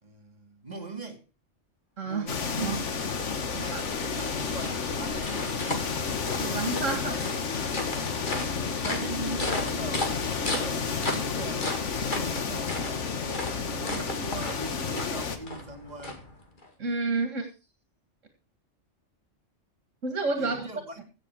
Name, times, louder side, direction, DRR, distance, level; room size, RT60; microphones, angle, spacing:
voice 1, 0.0-1.2 2.0-2.6 3.2-6.0 6.6-7.4 8.0-11.7 12.1-13.1 13.6-16.3 20.4-21.0, right 2 dB, 35° right, 2.1 m, -41 dB
sound 1, 2.2-16.7, left 2 dB, 40° left, 2.2 m, -37 dB
sound 2, 2.3-15.4, left 5 dB, 70° left, 1.6 m, -31 dB
voice 2, 2.6-2.9 3.5-3.8 6.4-7.2 16.8-17.5 20.0-20.7, right 3 dB, 80° right, 2.3 m, -30 dB
16.0 x 7.5 x 4.6 m
omnidirectional pair, 1.3 m